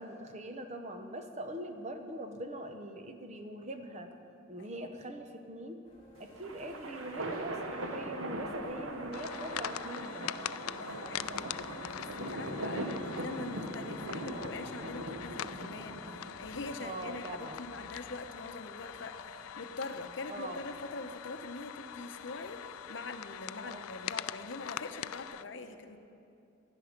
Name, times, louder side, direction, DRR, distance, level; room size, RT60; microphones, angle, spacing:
voice 1, 0.0-4.1 4.5-5.8 6.2-10.3 12.7-13.1 14.2-14.4 16.8-17.6 20.3-20.6 23.6-23.8, right 1 dB, 35° right, 6 dB, 0.8 m, -43 dB
sound 1, 5.8-25.3, left 1 dB, 30° left, 3.1 m, -57 dB
sound 2, 6.2-16.6, right 1 dB, 85° right, 1.2 m, -40 dB
sound 3, 9.1-25.4, left 11 dB, 90° left, 0.3 m, -43 dB
voice 2, 10.6-26.0, left 3 dB, 60° left, 7 dB, 0.8 m, -44 dB
16.5 x 11.0 x 5.2 m, 2.6 s
head